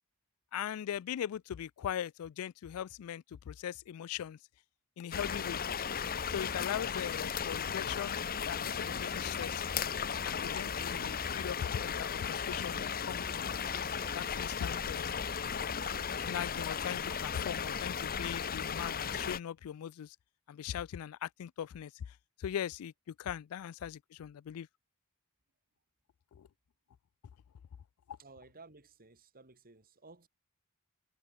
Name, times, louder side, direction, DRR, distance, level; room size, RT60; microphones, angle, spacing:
voice 1, 0.5-4.4 5.0-5.6 6.3-9.6 10.2-13.5 14.2-15.2 16.3-20.2 20.5-24.7 26.3-26.5 28.1-28.2, left 9 dB, 75° left, 0.3 m, -40 dB
sound 1, 5.1-19.4, left 7 dB, 45° left, 0.9 m, -36 dB
Liquid, 13.1-17.7 18.4-18.5, left 2 dB, 15° left, 2.4 m, -60 dB
voice 2, 28.2-30.3, right 3 dB, 45° right, 3.1 m, -56 dB
head